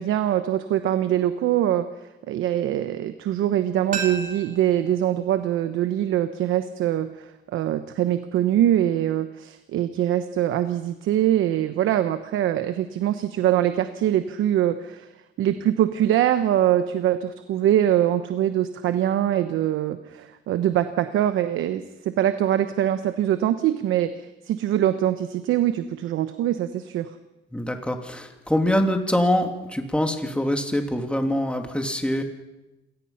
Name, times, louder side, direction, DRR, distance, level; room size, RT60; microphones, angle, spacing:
voice 1, 0.0-1.9 2.3-15.1 15.4-27.1, right 11 dB, 85° right, 10 dB, 1.0 m, -23 dB
sound 1, 3.9-6.7 7.0-7.1, right 5 dB, 45° right, 3.6 m, -36 dB
voice 2, 27.5-32.2, left 1 dB, 5° left, 4 dB, 2.8 m, -24 dB
27.0 x 18.5 x 5.8 m, 0.98 s
cardioid pair, 90°, 20 cm